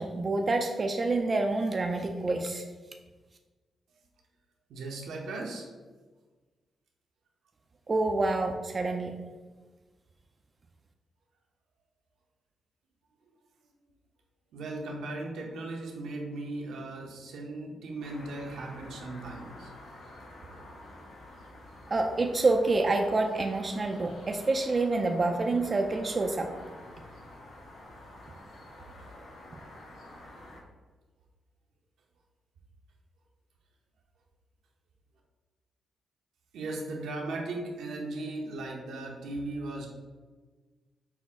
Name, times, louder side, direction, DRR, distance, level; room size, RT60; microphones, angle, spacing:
voice 1, 0.0-2.6 7.9-9.1 21.9-26.5, right 2 dB, 40° right, 3 dB, 0.4 m, -27 dB
voice 2, 4.7-5.7 14.5-19.7 28.9-29.2 36.5-39.9, right 2 dB, 85° right, 0 dB, 0.8 m, -37 dB
sound 1, 18.0-30.6, left 1 dB, 80° left, 1.0 m, -49 dB
5.9 x 2.0 x 3.5 m, 1.3 s
cardioid pair, 65°, 0 cm